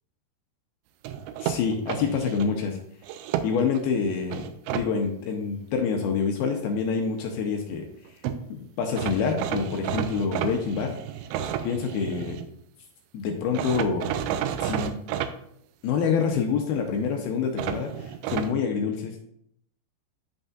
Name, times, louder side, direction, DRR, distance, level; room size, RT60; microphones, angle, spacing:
sound 1, 1.1-2.5 3.0-3.8 4.3-4.9 8.0-8.1 8.2-8.4 9.0-12.5 13.6-15.3 17.6-18.5, right 10 dB, 85° right, 2.7 m, -31 dB
voice 1, 1.4-2.8 3.4-4.4 4.7-7.9 8.5-10.9 11.6-12.4 13.1-14.1 14.6-15.0 15.8-19.2, left 6 dB, 80° left, 3 dB, 2.3 m, -27 dB
11.0 x 5.3 x 2.4 m, 0.71 s
omnidirectional pair, 5.1 m